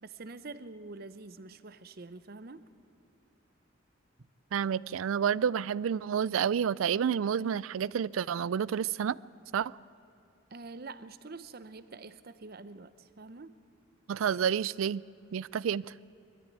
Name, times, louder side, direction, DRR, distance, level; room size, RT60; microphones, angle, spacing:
voice 1, 0.0-2.7 4.2-4.3 10.5-13.5, right 3 dB, 50° right, 14 dB, 0.7 m, -46 dB
voice 2, 4.5-9.2 9.5-9.7 14.1-15.0 15.3-15.8, right 8 dB, 80° right, 22 dB, 0.4 m, -29 dB
21.5 x 13.0 x 9.3 m, 2.7 s
head